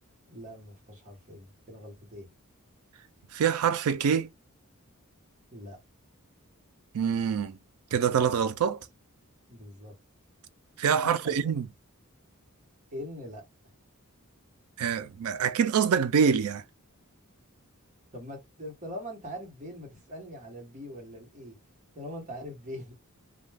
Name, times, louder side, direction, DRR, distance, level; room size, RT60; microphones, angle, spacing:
voice 1, 0.3-2.3 5.5-5.8 9.5-9.9 11.0-11.5 12.9-13.4 18.1-21.5 21.9-22.9, equal, 35° right, 1.0 m, -42 dB
voice 2, 3.3-4.3 6.9-7.6 7.9-8.8 10.8-11.7 14.8-16.6, right 7 dB, 75° right, 0.4 m, -25 dB
2.2 x 2.2 x 3.3 m
head